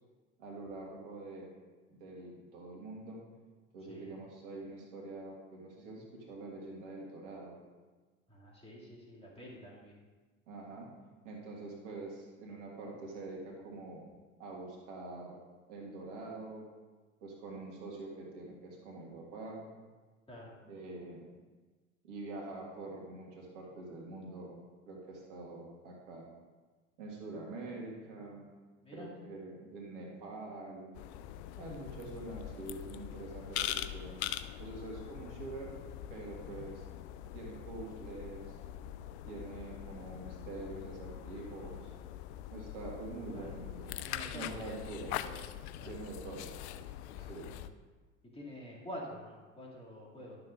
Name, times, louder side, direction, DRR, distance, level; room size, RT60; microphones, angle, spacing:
voice 1, 0.4-1.5 1.9-3.2 3.7-7.6 10.5-10.9 11.2-14.0 14.4-15.4 15.7-16.7 17.2-19.7 20.6-21.3 22.0-24.6 24.9-26.3 27.0-28.5 28.9-30.9 31.6-34.2 34.6-35.8 36.1-36.8 37.3-38.6 39.3-41.9 42.5-44.0 44.3-45.2 45.9-46.6 47.3-47.5, right 2 dB, 65° right, -1 dB, 1.9 m, -45 dB
voice 2, 8.3-9.9 20.3-20.5 28.8-29.1 43.3-43.5 44.0-45.4 45.8-46.0 47.1-47.6 48.3-50.4, equal, 15° left, -5 dB, 2.5 m, -48 dB
sound 1, 30.9-47.7, left 12 dB, 60° left, 0.5 m, -43 dB
12.0 x 6.7 x 2.6 m, 1.3 s
hypercardioid pair, 75°, 38 cm